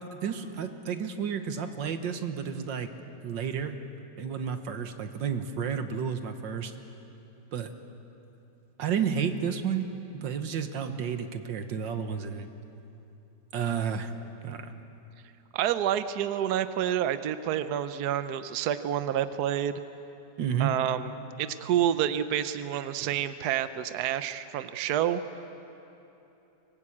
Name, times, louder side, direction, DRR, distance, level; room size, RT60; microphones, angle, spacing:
voice 1, 0.1-2.9 3.2-3.8 4.2-6.7 7.5-7.7 8.8-9.9 10.1-12.5 13.5-14.1 14.4-14.7 20.4-20.7, right 7 dB, 90° right, 8 dB, 1.9 m, -31 dB
voice 2, 15.5-19.8 20.6-25.2, right 10 dB, 65° right, 12 dB, 1.2 m, -28 dB
24.5 x 20.0 x 8.6 m, 3.0 s
omnidirectional pair, 1.9 m